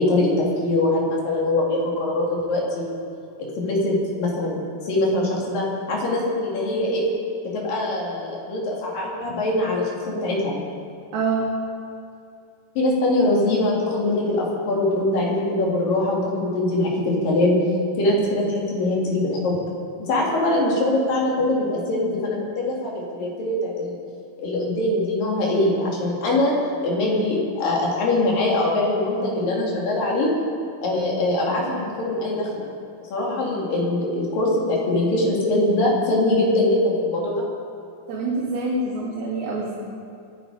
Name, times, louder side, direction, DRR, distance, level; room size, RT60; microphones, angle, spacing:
voice 1, 0.0-2.9 3.6-7.1 7.5-10.6 12.8-17.6 18.0-19.6 20.1-24.0 24.4-26.5 26.8-30.3 30.8-32.6 33.1-37.4, left 2 dB, 70° left, -3 dB, 4.4 m, -22 dB
voice 2, 11.1-11.5 38.1-39.7, right 3 dB, 90° right, -6 dB, 4.2 m, -25 dB
24.0 x 10.0 x 4.9 m, 2.4 s
omnidirectional pair, 4.1 m